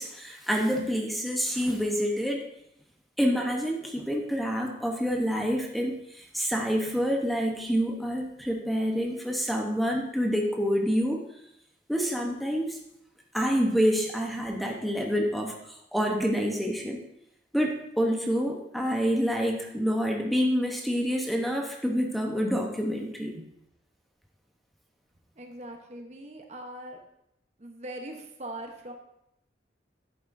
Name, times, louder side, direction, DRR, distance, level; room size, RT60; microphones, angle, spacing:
voice 1, 0.0-2.5 3.2-11.2 11.9-12.8 13.3-17.0 17.5-23.3, equal, ahead, 0 dB, 0.9 m, -27 dB
voice 2, 25.4-27.0 27.6-28.9, right 1 dB, 40° right, 3 dB, 0.9 m, -41 dB
11.0 x 8.7 x 2.6 m, 0.80 s
head